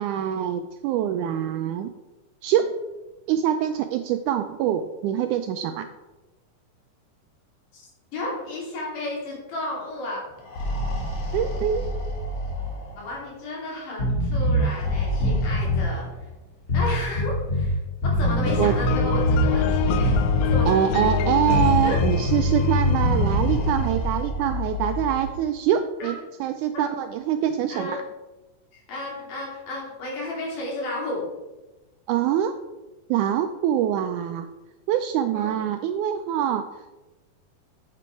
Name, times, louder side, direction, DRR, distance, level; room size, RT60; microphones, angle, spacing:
voice 1, 0.0-1.9 2.4-2.7 3.3-5.9 11.3-11.9 18.6-18.8 20.7-26.2 26.4-28.0 32.1-32.6 33.1-34.5 34.9-36.6, right 10 dB, 80° right, 7 dB, 1.8 m, -24 dB
voice 2, 8.1-10.2 13.0-16.1 16.7-20.7 21.0-21.1 21.8-22.0 26.0-26.1 26.7-26.9 27.7-28.0 28.7-31.2 35.3-35.5, left 2 dB, 70° left, -3 dB, 4.2 m, -32 dB
sound 1, 10.3-13.2 14.6-16.3 17.3-17.4 17.7-17.8 19.1-22.2 22.8-25.4, left 2 dB, 50° left, 2.1 m, -28 dB
sound 2, 14.0-14.7 15.1-15.9 16.7-17.7 18.0-19.5 19.8-20.8 21.5-23.6, left 1 dB, 25° left, 1.9 m, -23 dB
sound 3, 18.4-24.3, left 10 dB, 85° left, 1.6 m, -30 dB
8.9 x 7.0 x 4.6 m, 1.1 s
omnidirectional pair, 3.9 m